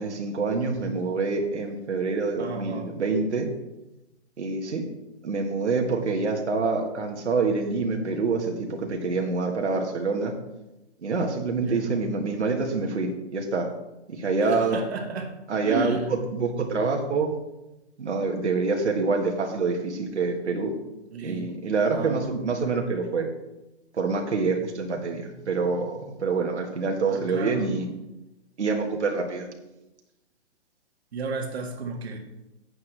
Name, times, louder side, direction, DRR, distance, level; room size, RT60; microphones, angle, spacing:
voice 1, 0.0-3.5 4.4-4.9 5.2-10.3 11.0-13.7 14.1-14.8 15.5-17.4 18.0-20.7 21.2-23.3 23.9-27.9 28.6-29.5, right 4 dB, 80° right, 2 dB, 1.7 m, -26 dB
voice 2, 2.4-2.9 11.6-11.9 14.4-15.4 15.6-16.1 21.1-21.5 21.8-22.3 27.0-27.6 31.1-32.2, right 3 dB, 65° right, 2 dB, 1.7 m, -33 dB
11.5 x 8.5 x 3.4 m, 0.96 s
hypercardioid pair, 140°, 34 cm